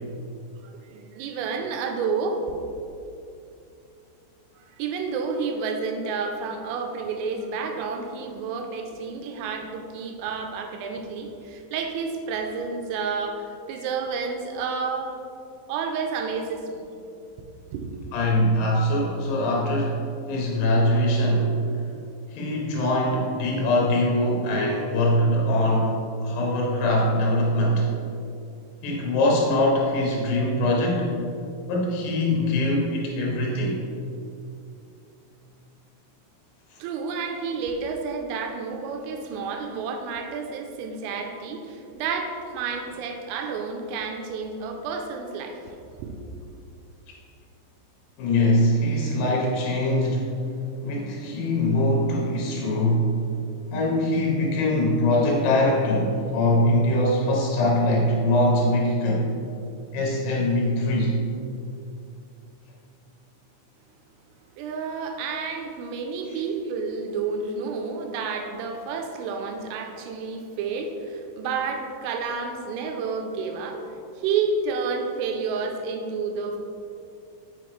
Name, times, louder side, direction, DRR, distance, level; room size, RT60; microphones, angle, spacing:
voice 1, 0.6-2.4 4.6-15.2 15.7-16.9 17.7-17.9 36.8-46.2 64.6-76.6, right 5 dB, 85° right, 3 dB, 3.2 m, -30 dB
voice 2, 18.1-20.0 20.3-21.5 22.3-27.9 28.8-31.1 31.7-33.8 48.2-50.4 50.8-53.1 53.7-59.3 59.9-61.2, left 1 dB, 85° left, -3 dB, 3.8 m, -22 dB
7.0 x 6.4 x 3.1 m, 2.6 s
omnidirectional pair, 5.8 m